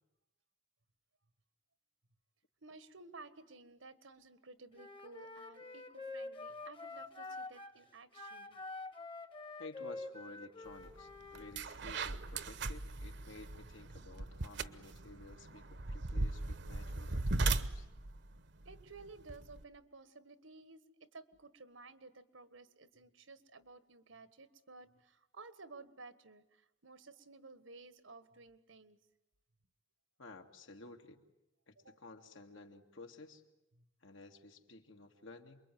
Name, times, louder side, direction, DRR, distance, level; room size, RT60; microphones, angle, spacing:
voice 1, 2.6-8.6 18.6-29.0 31.8-32.0 33.7-33.9, right 3 dB, 85° right, 13 dB, 1.6 m, -55 dB
Wind instrument woodwind instrument, 4.8-7.8 8.1-11.6, left 3 dB, 25° left, 1.1 m, -47 dB
voice 2, 9.6-17.9 30.2-31.2 31.7-33.4 34.0-35.6, left 2 dB, 85° left, 4 dB, 2.3 m, -54 dB
sound 1, 10.8-11.0 11.3-19.6, right 2 dB, 65° right, 1.0 m, -38 dB
28.0 x 22.5 x 9.4 m, 0.89 s
head